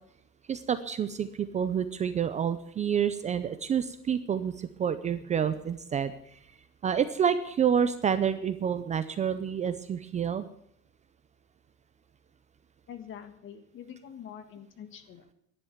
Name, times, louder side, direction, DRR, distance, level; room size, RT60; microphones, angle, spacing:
voice 1, 0.5-6.4 6.8-10.5, right 8 dB, 25° right, 12 dB, 0.5 m, -28 dB
voice 2, 12.9-15.3, left 9 dB, 40° left, 9 dB, 1.7 m, -45 dB
11.5 x 10.5 x 9.1 m, 0.72 s
cardioid pair, 180°, 30 cm